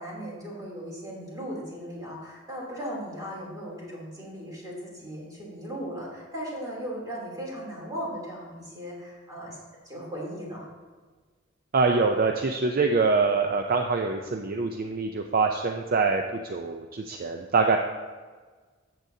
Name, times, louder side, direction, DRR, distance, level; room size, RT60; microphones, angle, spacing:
voice 1, 0.0-9.6 9.8-10.7, equal, 20° right, -5 dB, 3.1 m, -37 dB
voice 2, 11.7-17.8, right 4 dB, 45° right, 4 dB, 0.5 m, -24 dB
13.5 x 7.8 x 2.8 m, 1.4 s
head